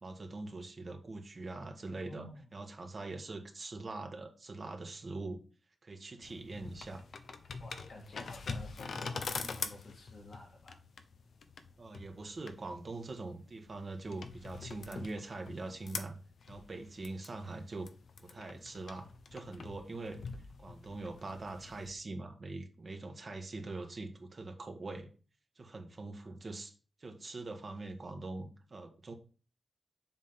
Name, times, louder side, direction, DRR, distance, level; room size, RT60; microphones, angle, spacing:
voice 1, 0.0-2.3 2.5-5.4 5.8-7.0 11.8-16.2 16.5-17.9 18.2-20.2 20.6-25.1 25.6-26.7 27.0-29.1, right 2 dB, 40° right, 4 dB, 1.4 m, -43 dB
voice 2, 2.1-2.4 7.6-10.8, left 2 dB, 55° left, 1 dB, 2.0 m, -51 dB
sound 1, 6.2-21.9, left 4 dB, 70° left, 0.8 m, -45 dB
7.3 x 3.7 x 5.7 m, 0.36 s
wide cardioid pair, 110°, 0 cm